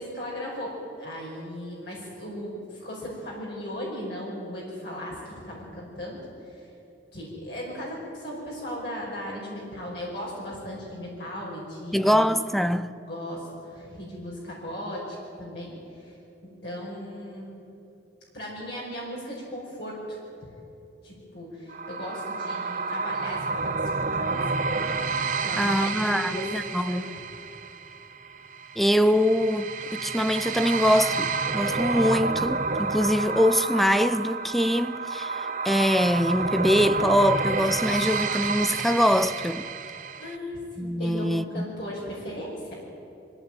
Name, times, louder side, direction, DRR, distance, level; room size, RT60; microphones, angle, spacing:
voice 1, 0.0-6.2 6.5-6.7 7.1-12.3 13.1-16.2 16.4-17.4 18.3-20.5 21.0-23.8 24.1-24.7 25.4-27.0 40.2-42.8, equal, 60° left, 5.3 m, -37 dB
voice 2, 11.9-12.9 25.6-27.1 28.8-39.7 40.8-41.6, equal, ahead, 0.5 m, -23 dB
sound 1, 21.7-40.4, right 4 dB, 40° right, 1.0 m, -30 dB
25.5 x 17.0 x 9.1 m
head